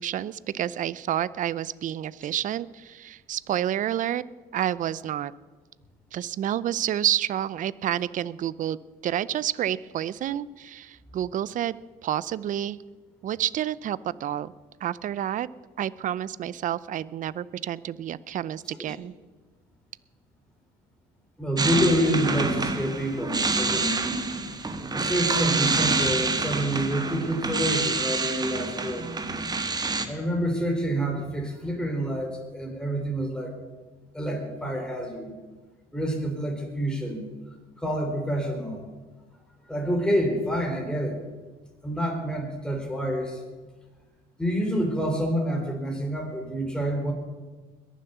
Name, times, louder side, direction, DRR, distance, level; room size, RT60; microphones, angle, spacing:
voice 1, 0.0-4.2 4.5-5.3 6.1-8.8 9.0-11.7 12.0-12.8 13.2-14.5 14.8-15.5 15.8-19.1, right 11 dB, 50° right, 19 dB, 0.5 m, -29 dB
voice 2, 21.4-24.1 24.9-29.1 30.1-33.5 34.1-35.4 35.9-37.3 37.8-38.8 39.7-41.2 41.8-43.4 44.4-47.1, equal, 5° left, 1 dB, 3.8 m, -27 dB
sound 1, 21.6-30.1, right 3 dB, 25° right, 1.4 m, -27 dB
21.5 x 7.4 x 6.9 m, 1.3 s
cardioid pair, 110°, 17 cm